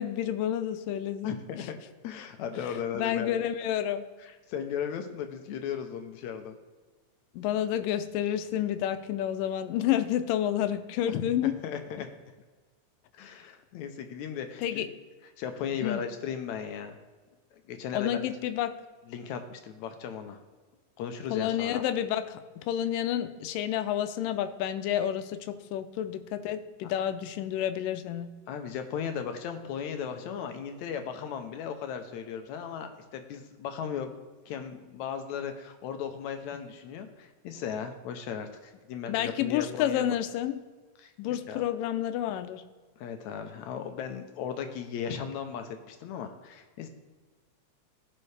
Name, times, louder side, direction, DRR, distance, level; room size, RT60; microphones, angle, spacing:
voice 1, 0.0-1.7 2.6-4.1 7.3-11.5 14.6-14.9 15.8-16.0 17.9-18.8 21.3-28.3 39.1-40.6 41.2-42.6, left 11 dB, 90° left, 10 dB, 2.3 m, -30 dB
voice 2, 1.2-1.8 2.0-3.3 4.5-6.6 11.0-12.1 13.1-14.8 15.4-17.0 17.7-18.2 19.1-20.4 21.0-21.8 28.5-34.1 34.5-40.0 41.0-41.1 41.5-41.6 43.0-46.9, left 7 dB, 75° left, 7 dB, 1.8 m, -36 dB
16.0 x 5.6 x 3.3 m, 1.4 s
omnidirectional pair, 3.8 m